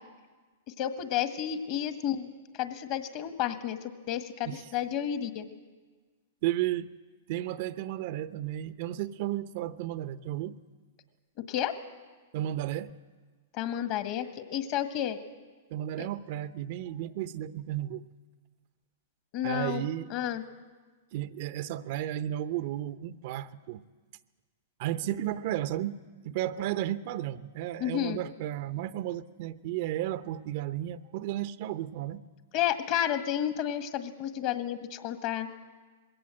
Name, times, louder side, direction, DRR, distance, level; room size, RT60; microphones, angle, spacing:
voice 1, 0.8-5.4 11.5-11.7 13.5-15.2 16.0-16.1 19.3-20.4 27.8-28.2 32.5-35.5, left 10 dB, 45° left, 1.6 m, -31 dB
voice 2, 6.4-6.9 7.3-10.6 12.3-12.9 15.7-18.0 19.4-20.1 21.1-23.8 24.8-32.2, right 13 dB, 55° right, 0.7 m, -33 dB
21.5 x 17.0 x 7.7 m
hypercardioid pair, 115°, 0 cm